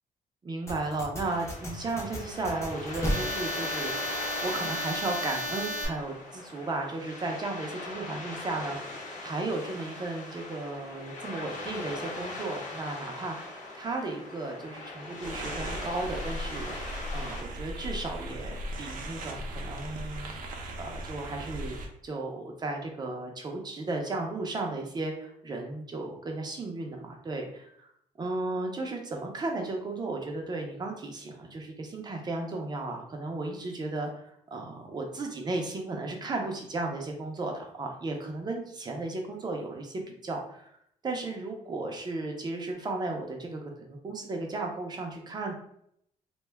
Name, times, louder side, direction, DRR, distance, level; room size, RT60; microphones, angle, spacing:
voice 1, 0.4-16.7 17.1-20.3 20.8-27.9 28.2-40.7 41.0-45.5, right 2 dB, 30° right, 2 dB, 0.5 m, -35 dB
sound 1, 0.7-5.9, equal, 20° left, 0.6 m, -33 dB
sound 2, 1.2-17.4, left 2 dB, 60° left, 0.8 m, -40 dB
sound 3, 15.2-21.9, right 1 dB, 75° right, 0.5 m, -38 dB
2.6 x 2.2 x 3.2 m, 0.70 s
cardioid pair, 130°, 14 cm